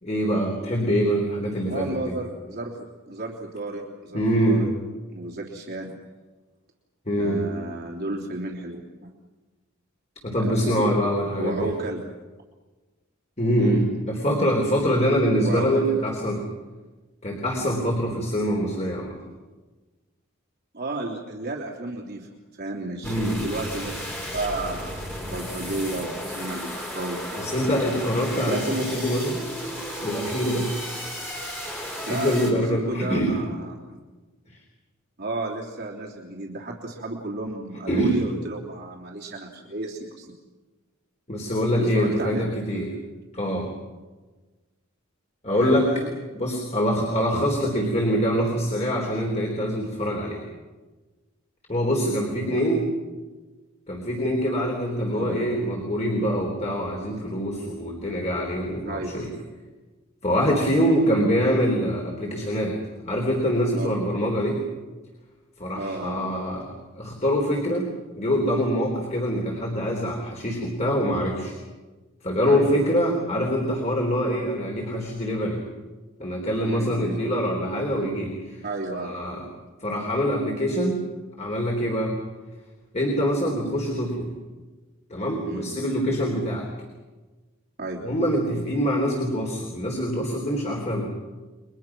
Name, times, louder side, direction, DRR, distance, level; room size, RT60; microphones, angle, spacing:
voice 1, 0.0-2.1 4.1-4.6 7.1-7.4 10.2-11.7 13.4-16.4 17.2-19.2 23.0-23.4 27.4-29.4 30.0-30.7 32.1-33.4 37.9-38.2 41.3-42.9 43.3-43.7 45.4-45.9 46.3-50.4 51.7-52.9 53.9-59.3 60.2-62.8 63.1-64.6 65.6-67.9 68.2-71.5 72.2-75.6 76.2-78.6 79.0-79.4 79.8-81.0 81.4-82.1 82.9-84.3 85.1-86.7 88.0-91.1, equal, 35° left, 0 dB, 3.7 m, -24 dB
voice 2, 1.7-4.7 5.1-5.9 7.2-9.1 10.3-11.0 11.4-12.0 13.6-13.8 15.4-16.0 20.7-22.3 22.6-24.0 24.3-27.4 28.4-29.0 32.1-34.0 35.2-40.3 41.8-42.5 45.6-46.2 52.4-52.6 55.1-55.4 58.8-59.4 63.7-63.9 65.7-66.3 72.4-72.7 76.6-77.2 78.6-79.2 85.4-85.7 87.8-88.1, right 2 dB, 50° right, -2 dB, 3.2 m, -32 dB
sound 1, 23.0-32.5, equal, 10° left, 6.6 m, -34 dB
30.0 x 24.0 x 6.1 m, 1.3 s
head